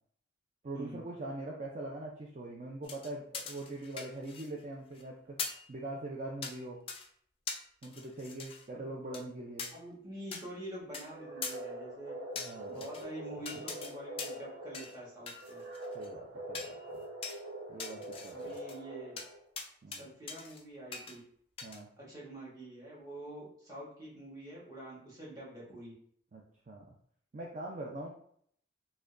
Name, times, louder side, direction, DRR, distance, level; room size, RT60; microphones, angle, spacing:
voice 1, 0.6-5.4 5.7-6.8 7.8-9.7 12.4-12.8 15.9-17.0 17.7-18.5 19.8-20.0 21.6-21.9 26.3-27.0 27.3-28.1, right 2 dB, 40° right, -1 dB, 0.4 m, -42 dB
sound 1, 2.8-4.6 4.9-5.0 5.4-5.7 6.4-6.6 6.9-7.1 7.5-8.6 9.1-9.2 9.6-9.7 10.3-10.4 10.9-11.0 11.4-11.6 12.4-13.0 13.5-13.9 14.2-14.5 14.7-15.0 15.3-16.1 16.5-16.8 17.2-17.4 17.8-18.8 19.2-19.3 19.6-20.0 20.3-20.6 20.9-21.2 21.6-21.8, left 5 dB, 30° left, 0.4 m, -42 dB
voice 2, 9.7-12.1 12.7-15.6 18.3-19.2 19.9-21.2 22.0-25.9, right 1 dB, 20° right, -6 dB, 1.2 m, -46 dB
sound 2, 11.0-19.5, right 1 dB, 80° right, 1.2 m, -44 dB
4.8 x 2.2 x 2.5 m, 0.63 s
head